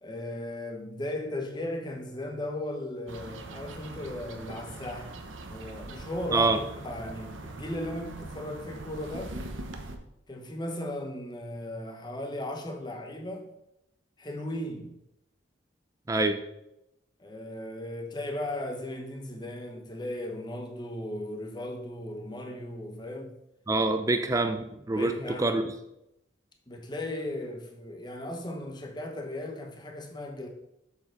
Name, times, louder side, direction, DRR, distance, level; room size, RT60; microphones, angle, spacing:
voice 1, 0.0-5.2 5.5-9.3 10.3-13.5 14.2-14.9 17.2-23.4 24.9-25.7 26.7-30.5, left 1 dB, 20° left, 1.0 m, -36 dB
sound 1, 3.1-10.0, right 2 dB, 85° right, 0.9 m, -42 dB
voice 2, 16.1-16.4 23.7-25.6, right 2 dB, 15° right, 0.4 m, -26 dB
7.2 x 6.6 x 3.9 m
head